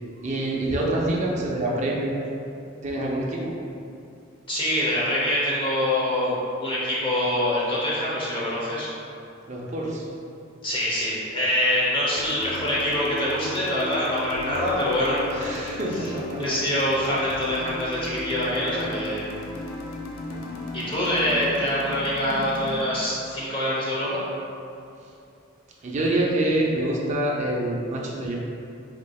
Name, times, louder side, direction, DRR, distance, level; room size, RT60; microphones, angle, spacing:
voice 1, 0.2-2.2 2.8-3.5 9.5-10.1 15.4-16.4 25.8-28.4, right 1 dB, 35° right, -3 dB, 0.5 m, -26 dB
voice 2, 4.5-6.3 6.6-8.9 10.6-16.1 16.4-19.3 20.7-24.2, left 1 dB, 25° left, -7 dB, 0.8 m, -25 dB
sound 1, 12.2-22.8, left 2 dB, 80° left, 0.4 m, -35 dB
3.7 x 3.3 x 2.3 m, 2.6 s
head